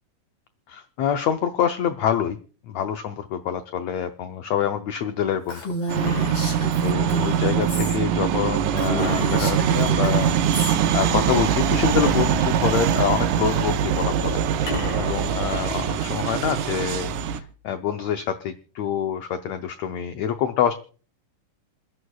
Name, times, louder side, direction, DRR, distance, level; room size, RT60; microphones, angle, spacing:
voice 1, 0.7-2.4 2.6-5.7 6.8-10.4 10.9-20.7, left 9 dB, 85° left, 8 dB, 1.5 m, -26 dB
Female speech woman speaking, 5.5-8.0 8.3-8.4 8.7-10.8, equal, 35° left, 6.4 m, -31 dB
sound 1, 5.9-17.4, right 8 dB, 75° right, 2.1 m, -23 dB
sound 2, 6.0-7.1 9.0-10.0 12.0-13.1 14.7-15.7, left 2 dB, 50° left, 6.2 m, -33 dB
28.0 x 11.5 x 2.3 m, 0.38 s
omnidirectional pair, 4.0 m